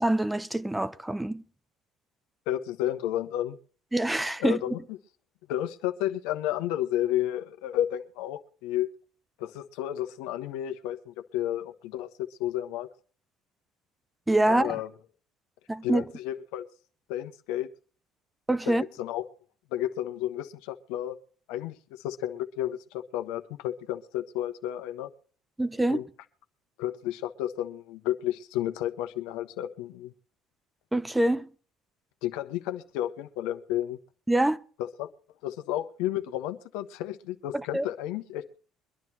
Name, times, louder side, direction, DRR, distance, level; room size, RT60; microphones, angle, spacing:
voice 1, 0.0-1.4 3.9-4.6 14.3-14.8 15.7-16.0 18.5-18.8 25.6-26.0 30.9-31.5 34.3-34.6 37.5-37.9, right 1 dB, 10° right, 0.8 m, -25 dB
voice 2, 2.5-3.6 4.4-4.8 5.5-8.9 9.4-12.9 14.5-14.9 15.8-16.6 17.1-17.7 18.7-19.2 19.7-21.2 21.5-25.1 25.9-26.0 26.8-30.1 32.2-34.0 34.8-35.1 35.4-38.5, left 12 dB, 80° left, 1.2 m, -32 dB
23.5 x 11.0 x 2.9 m
supercardioid pair, 75°, 0 cm